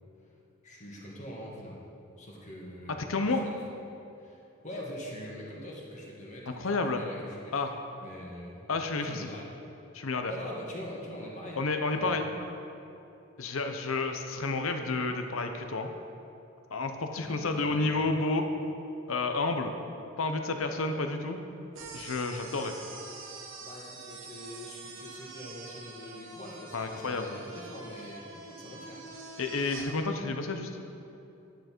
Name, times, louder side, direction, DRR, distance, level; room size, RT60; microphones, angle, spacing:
voice 1, 0.6-1.9 2.2-3.5 4.2-7.7 8.0-8.6 9.1-9.5 10.3-11.6 11.9-12.2 17.0-18.0 20.8-21.0 23.6-29.0, equal, 35° left, -3 dB, 1.7 m, -44 dB
voice 2, 3.1-3.4 6.5-7.0 7.5-7.7 8.7-9.3 9.9-10.3 11.5-12.3 13.4-15.9 16.7-18.5 19.1-19.7 20.2-21.4 21.9-22.7 26.7-27.4 29.4-30.7, left 3 dB, 80° left, 6 dB, 0.8 m, -30 dB
sound 1, 21.7-29.9, right 3 dB, 75° right, 1.5 m, -46 dB
10.5 x 9.2 x 4.5 m, 2.8 s
head